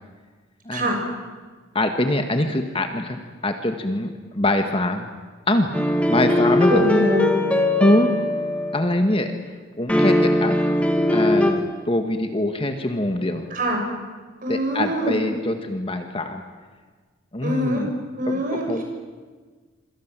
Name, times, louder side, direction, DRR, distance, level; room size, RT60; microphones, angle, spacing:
voice 1, 1.7-5.1 5.5-5.7 6.1-6.9 7.8-8.1 8.7-9.3 9.8-10.6 11.1-13.5 14.5-16.4 17.3-17.9 18.3-18.8, left 1 dB, 25° left, 6 dB, 1.7 m, -23 dB
sound 1, 5.7-9.0 9.9-11.5, left 1 dB, 5° left, 2.5 m, -20 dB
voice 2, 6.7-7.3 13.5-13.8 14.4-15.2 17.4-17.8 18.2-18.7, equal, 40° right, 2 dB, 6.8 m, -23 dB
26.5 x 25.5 x 7.6 m, 1.4 s
head